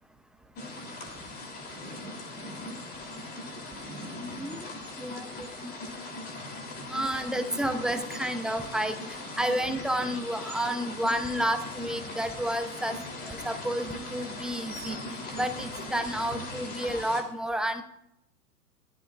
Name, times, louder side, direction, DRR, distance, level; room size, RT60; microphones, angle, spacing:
sound 1, 0.6-17.2, left 2 dB, 20° left, 3.5 m, -39 dB
voice 1, 4.2-4.7 5.0-5.8 6.9-13.0 13.3-15.0 15.3-17.8, right 1 dB, ahead, 8 dB, 0.7 m, -31 dB
23.0 x 16.5 x 2.5 m, 0.80 s
figure-of-eight pair, 110°, 46 cm